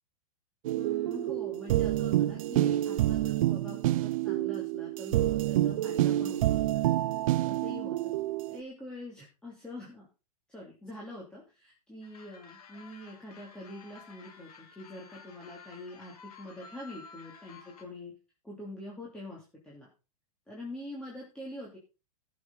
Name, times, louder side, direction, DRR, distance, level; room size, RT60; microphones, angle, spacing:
sound 1, 0.6-8.6, right 14 dB, 60° right, 0.7 m, -28 dB
voice 1, 0.8-6.8 7.5-8.1 8.5-10.1 10.5-18.1 18.4-19.9 20.5-21.8, left 1 dB, 5° left, -5 dB, 3.1 m, -45 dB
sound 2, 12.0-17.8, left 5 dB, 80° left, 3.1 m, -52 dB
16.0 x 7.5 x 4.1 m, 0.31 s
hypercardioid pair, 140°, 19 cm